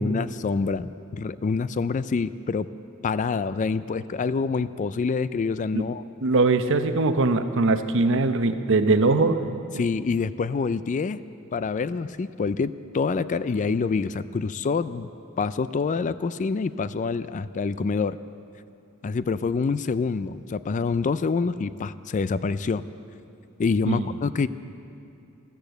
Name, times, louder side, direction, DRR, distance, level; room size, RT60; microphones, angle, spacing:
voice 1, 0.0-2.7 3.0-6.0 9.8-11.2 11.5-15.1 15.4-18.2 19.0-22.8 23.6-24.5, left 4 dB, 35° left, 15 dB, 0.3 m, -26 dB
voice 2, 6.2-9.5 23.9-24.1, right 3 dB, 60° right, 9 dB, 0.8 m, -21 dB
13.5 x 13.5 x 8.0 m, 2.7 s
head